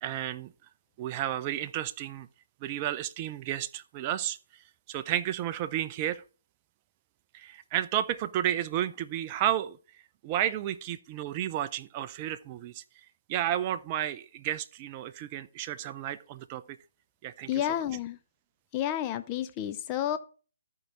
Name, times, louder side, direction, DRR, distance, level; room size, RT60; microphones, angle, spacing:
voice 1, 0.0-0.5 1.0-2.3 2.6-4.4 4.9-6.2 7.3-9.8 10.2-12.8 13.3-16.8 17.2-17.5, right 12 dB, 30° right, 0.5 m, -32 dB
voice 2, 17.5-18.2 18.7-20.2, left 11 dB, 25° left, 0.6 m, -30 dB
13.5 x 4.7 x 4.0 m
figure-of-eight pair, 145°, 0 cm